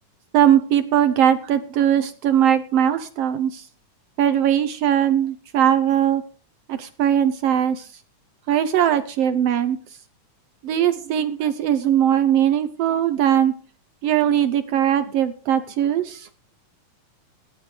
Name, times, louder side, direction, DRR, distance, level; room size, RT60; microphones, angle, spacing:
voice 1, 0.3-3.7 4.2-6.2 6.7-7.9 8.5-9.8 10.6-13.5 14.0-16.3, right 10 dB, 80° right, 11 dB, 1.4 m, -20 dB
18.0 x 11.5 x 3.3 m, 0.42 s
omnidirectional pair, 3.6 m